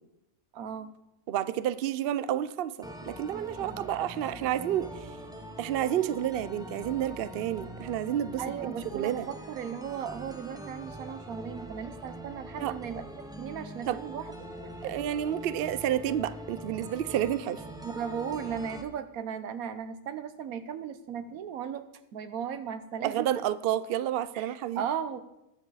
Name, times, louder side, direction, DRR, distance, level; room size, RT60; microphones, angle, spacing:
voice 1, 0.5-0.9 3.6-4.0 8.4-13.0 13.4-14.3 14.8-15.0 18.0-23.3 24.3-25.2, right 8 dB, 85° right, 11 dB, 1.3 m, -36 dB
voice 2, 1.3-5.1 5.6-9.3 12.6-12.7 13.9-14.0 14.8-17.6 23.0-24.8, right 11 dB, 65° right, 14 dB, 0.6 m, -30 dB
sound 1, 2.8-18.8, equal, 5° right, 0.7 m, -43 dB
20.5 x 7.2 x 4.0 m, 0.90 s
omnidirectional pair, 1.5 m